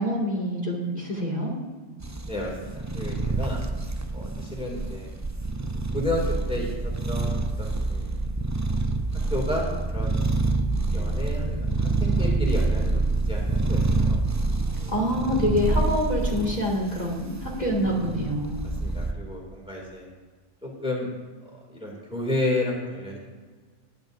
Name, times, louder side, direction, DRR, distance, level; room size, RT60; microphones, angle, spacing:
voice 1, 0.0-1.5 14.9-18.6, equal, 35° left, -3 dB, 2.5 m, -26 dB
sound 1, 2.0-19.1, right 2 dB, 25° right, 0.4 m, -27 dB
voice 2, 2.3-3.6 4.1-5.1 5.9-6.2 6.5-6.7 7.1-8.1 9.3-10.2 10.9-14.2 14.8-14.9 18.8-20.1 20.6-21.1 21.7-23.2, left 1 dB, 5° right, -2 dB, 2.5 m, -31 dB
20.0 x 11.0 x 2.6 m, 1.4 s
omnidirectional pair, 1.2 m